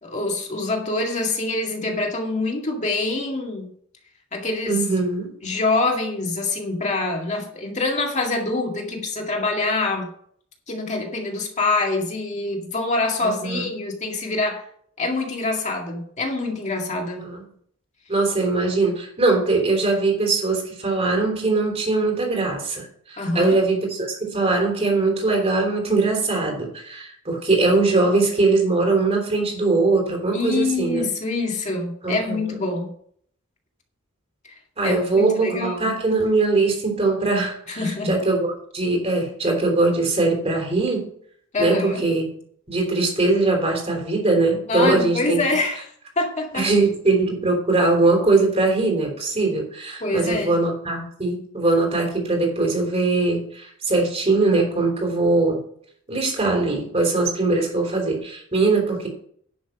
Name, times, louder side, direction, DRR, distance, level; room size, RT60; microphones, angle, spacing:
voice 1, 0.0-3.7 4.3-4.8 5.4-10.1 10.7-14.6 15.0-17.2 23.2-23.6 30.3-32.9 34.8-35.9 37.7-38.1 41.5-42.0 44.7-45.8 46.2-46.7 50.0-50.6, left 3 dB, 35° left, 1 dB, 2.1 m, -25 dB
voice 2, 4.7-5.3 13.2-13.7 17.2-17.4 18.1-31.1 32.0-32.6 34.8-41.1 41.6-42.3 42.7-45.4 46.5-55.6 56.1-59.1, right 3 dB, 30° right, 1 dB, 3.3 m, -21 dB
10.5 x 6.2 x 6.0 m, 0.62 s
head